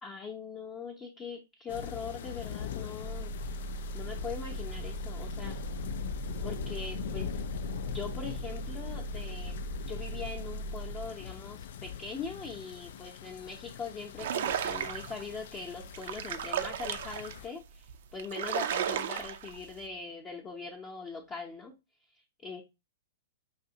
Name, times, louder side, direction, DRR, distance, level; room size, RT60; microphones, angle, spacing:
voice 1, 0.0-3.4 3.9-5.6 6.4-7.3 7.9-9.6 9.9-21.7 22.4-22.6, left 5 dB, 25° left, 0 dB, 0.7 m, -41 dB
sound 1, 1.7-17.5, left 8 dB, 60° left, 0.3 m, -41 dB
sound 2, 3.0-11.1, right 2 dB, 20° right, 0.7 m, -39 dB
sound 3, 14.2-15.2 15.8-17.4 17.9-18.0 18.2-19.6, right 9 dB, 60° right, 0.5 m, -34 dB
5.0 x 2.7 x 2.7 m, 0.25 s
hypercardioid pair, 110°, 0 cm